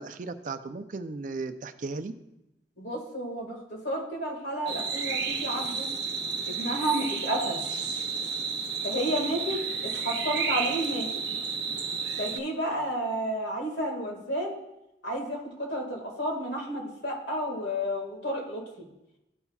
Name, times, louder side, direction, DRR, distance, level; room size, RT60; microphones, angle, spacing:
voice 1, 0.0-2.1, right 3 dB, 45° right, 10 dB, 0.4 m, -36 dB
voice 2, 2.8-5.9 6.5-7.6 8.8-11.1 12.2-14.6 15.0-18.9, right 1 dB, 85° left, 1 dB, 1.9 m, -31 dB
sound 1, 4.7-12.4, right 5 dB, 65° right, 0.9 m, -31 dB
13.0 x 5.5 x 2.3 m, 0.90 s
head